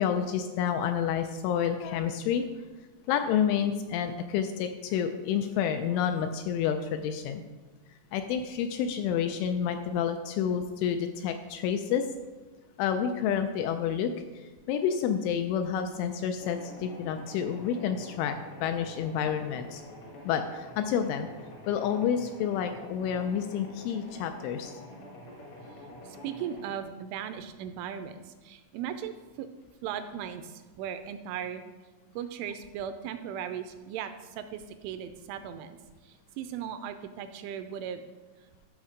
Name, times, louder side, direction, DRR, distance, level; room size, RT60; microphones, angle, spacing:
voice 1, 0.0-2.5 3.1-7.4 8.1-12.1 12.8-19.8 20.3-21.3 21.7-24.9, left 8 dB, 85° left, 7 dB, 2.8 m, -29 dB
sound 1, 16.4-26.8, left 1 dB, 65° left, 1.6 m, -47 dB
voice 2, 26.0-29.5 29.8-31.6 32.2-35.8 36.0-38.0, right 9 dB, 85° right, 9 dB, 2.8 m, -37 dB
13.0 x 6.3 x 5.0 m, 1.3 s
omnidirectional pair, 5.8 m